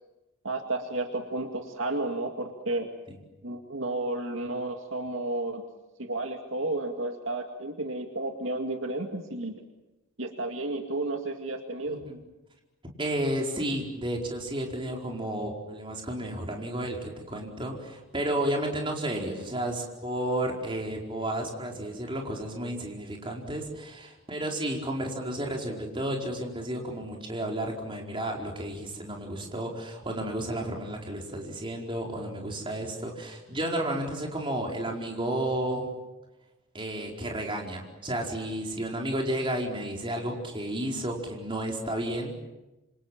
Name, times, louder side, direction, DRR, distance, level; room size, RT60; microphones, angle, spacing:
voice 1, 0.4-2.9 3.4-5.6 6.0-9.6 10.2-12.0, right 2 dB, 65° right, 4 dB, 2.2 m, -32 dB
voice 2, 11.9-12.2 13.0-35.9 36.7-42.3, right 1 dB, 25° right, 0 dB, 4.7 m, -32 dB
27.5 x 26.5 x 7.5 m, 1.0 s
head